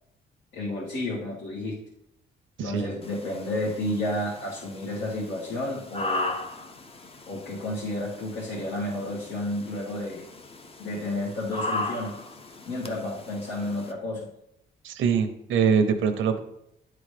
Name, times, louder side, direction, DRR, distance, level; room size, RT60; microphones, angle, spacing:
voice 1, 0.5-1.8 2.6-6.3 7.3-10.2 10.8-12.1 12.6-14.3, left 1 dB, 75° left, -6 dB, 1.8 m, -31 dB
voice 2, 2.6-2.9 14.8-16.4, right 6 dB, 75° right, 7 dB, 0.8 m, -23 dB
sound 1, 3.0-13.9, left 2 dB, 30° left, 0.7 m, -37 dB
10.5 x 3.8 x 3.4 m, 0.80 s
cardioid pair, 90°, 20 cm